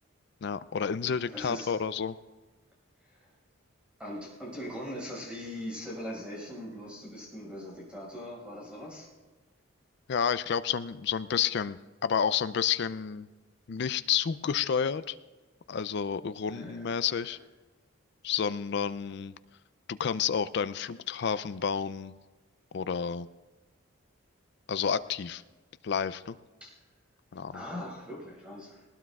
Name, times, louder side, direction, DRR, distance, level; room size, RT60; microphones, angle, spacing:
voice 1, 0.4-2.2 10.1-13.3 13.7-15.2 15.7-17.4 18.2-19.3 19.9-22.1 22.7-23.3 24.7-25.4 25.8-26.4 27.3-27.6, left 7 dB, 55° left, 14 dB, 0.4 m, -30 dB
voice 2, 1.0-1.7 3.0-3.3 4.0-9.1 16.5-17.4 26.6-26.7 27.5-28.9, equal, 5° right, -3 dB, 5.3 m, -41 dB
19.5 x 19.0 x 2.4 m, 1.3 s
head